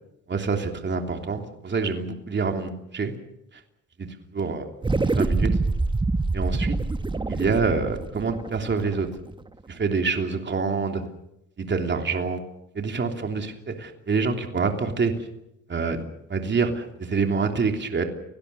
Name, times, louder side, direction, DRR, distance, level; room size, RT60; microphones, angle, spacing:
voice 1, 0.3-3.1 4.0-4.6 5.0-5.5 6.3-6.7 7.3-9.1 9.7-11.0 11.6-12.4 12.7-15.1 15.7-16.0 16.3-18.0, right 4 dB, 35° right, 4 dB, 3.1 m, -26 dB
sound 1, 4.8-9.5, right 3 dB, 15° right, 1.1 m, -26 dB
30.0 x 17.5 x 6.9 m, 0.86 s
cardioid pair, 90°, 30 cm